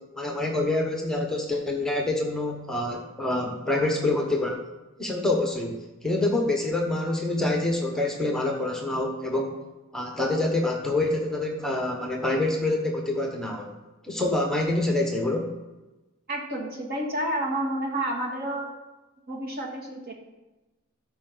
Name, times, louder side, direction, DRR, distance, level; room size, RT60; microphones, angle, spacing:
voice 1, 0.1-4.6 5.0-9.6 9.9-13.7 14.0-15.5, left 2 dB, 5° left, 1 dB, 1.1 m, -26 dB
voice 2, 16.3-18.7 19.3-20.1, right 1 dB, 50° right, -1 dB, 1.8 m, -30 dB
13.5 x 5.6 x 4.0 m, 1.1 s
head